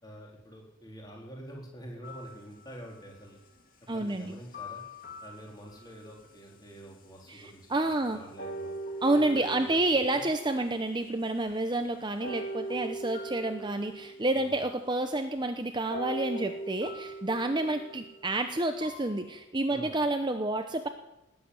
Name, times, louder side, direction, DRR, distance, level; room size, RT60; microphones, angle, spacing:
voice 1, 0.0-3.4 3.9-4.8 5.2-8.7 9.1-10.3 14.3-14.6 19.7-19.9, equal, 20° left, -1 dB, 4.0 m, -47 dB
sound 1, 2.0-3.1 4.5-6.2 6.9-7.0 8.4-11.3 12.2-14.9 15.9-19.4, right 1 dB, 40° left, 2.3 m, -41 dB
voice 2, 3.9-4.4 7.3-8.2 9.0-20.9, right 2 dB, 20° right, 7 dB, 0.8 m, -29 dB
19.0 x 7.8 x 9.6 m, 0.94 s
head